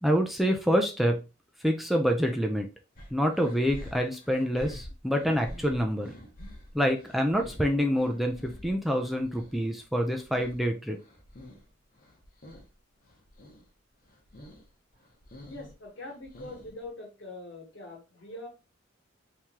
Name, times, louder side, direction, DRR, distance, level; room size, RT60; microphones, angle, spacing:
voice 1, 0.0-1.2 1.6-2.7 3.1-6.1 6.7-11.0, equal, ahead, 3 dB, 0.4 m, -26 dB
sound 1, 3.0-9.5 9.9-11.7 12.0-12.7 13.0-13.6 14.0-14.6 15.0-16.9, left 1 dB, 45° left, 0.9 m, -47 dB
voice 2, 15.5-18.5, left 2 dB, 65° left, 0 dB, 1.4 m, -43 dB
3.0 x 2.9 x 3.6 m, 0.30 s
head